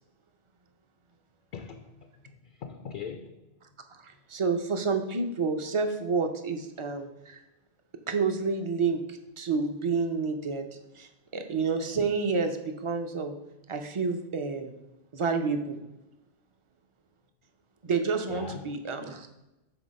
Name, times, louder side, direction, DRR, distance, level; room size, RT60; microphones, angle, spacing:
voice 1, 1.5-3.4 18.3-18.7, left 6 dB, 60° left, 6 dB, 0.6 m, -41 dB
voice 2, 3.9-7.4 8.1-10.6 10.9-13.4 13.7-14.7 15.1-15.8 17.8-19.4, right 4 dB, 40° right, 6 dB, 0.4 m, -29 dB
6.0 x 3.9 x 5.1 m, 0.96 s
omnidirectional pair, 1.2 m